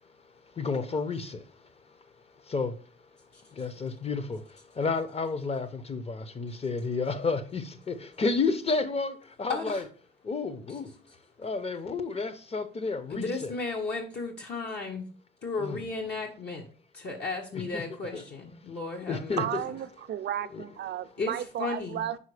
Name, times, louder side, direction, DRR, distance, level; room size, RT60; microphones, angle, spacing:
voice 1, 0.6-1.4 2.5-2.8 3.5-9.8 10.2-10.9 11.4-13.3 15.6-15.8 17.7-17.8 18.1-18.2 19.1-19.6 20.5-20.6, left 4 dB, 30° left, 0.8 m, -31 dB
voice 2, 3.3-3.7 9.5-9.9 10.7-11.2 13.1-15.1 15.4-16.7 16.9-19.5 21.2-22.0, left 3 dB, 55° left, 1.2 m, -35 dB
voice 3, 19.4-22.2, right 11 dB, 60° right, 0.5 m, -33 dB
5.6 x 4.5 x 4.9 m
cardioid pair, 90°, 20 cm